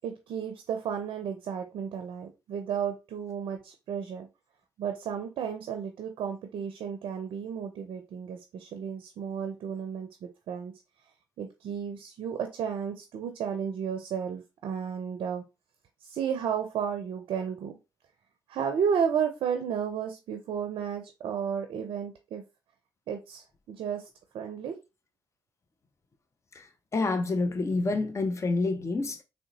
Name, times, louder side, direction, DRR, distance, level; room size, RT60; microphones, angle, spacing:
voice 1, 0.0-4.3 4.8-10.7 11.4-15.4 16.0-17.7 18.5-22.4 23.1-24.1 24.3-24.8, right 7 dB, 65° right, 0.5 m, -33 dB
voice 2, 26.9-29.2, left 3 dB, 30° left, 0.5 m, -28 dB
3.6 x 2.1 x 2.8 m
hypercardioid pair, 40°, 9 cm